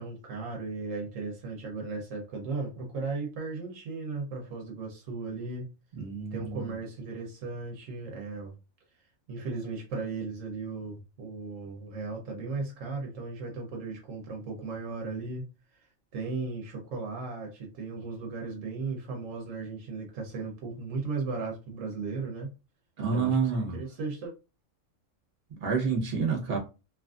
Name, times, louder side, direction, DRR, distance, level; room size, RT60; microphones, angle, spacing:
voice 1, 0.0-5.7 6.3-8.5 9.3-15.5 16.1-22.5 23.1-24.3, right 4 dB, 75° right, 1.1 m, -36 dB
voice 2, 5.9-6.7 23.0-23.8 25.6-26.6, right 5 dB, 40° right, 1.0 m, -28 dB
2.9 x 2.4 x 2.4 m
omnidirectional pair, 1.4 m